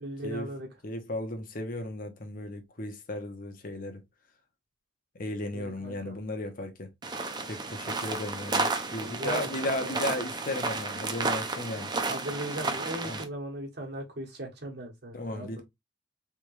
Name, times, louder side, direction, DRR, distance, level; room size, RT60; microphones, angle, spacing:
voice 1, 0.0-0.7 5.5-6.2 9.0-9.9 12.1-15.5, right 1 dB, 60° right, 1.4 m, -38 dB
voice 2, 0.8-4.0 5.2-6.9 7.4-11.9 13.0-13.2 15.1-15.6, left 1 dB, 45° left, 0.9 m, -35 dB
sound 1, 7.0-13.2, right 3 dB, 25° right, 0.7 m, -32 dB
3.6 x 3.5 x 3.2 m
head